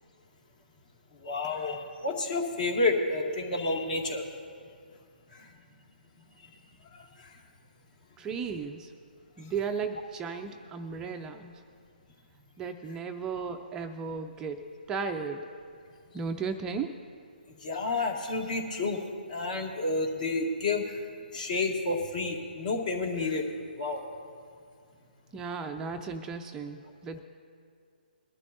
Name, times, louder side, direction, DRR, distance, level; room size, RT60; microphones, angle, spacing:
voice 1, 1.2-4.2 17.6-19.0 19.3-20.8 21.3-23.4 23.8-24.0, left 3 dB, 50° left, 1 dB, 2.1 m, -30 dB
voice 2, 8.2-8.9 9.4-11.6 12.6-15.5 16.1-17.0 25.3-27.2, right 5 dB, 10° right, 5 dB, 0.4 m, -35 dB
21.0 x 12.0 x 2.6 m, 2.3 s
hypercardioid pair, 150°, 5 cm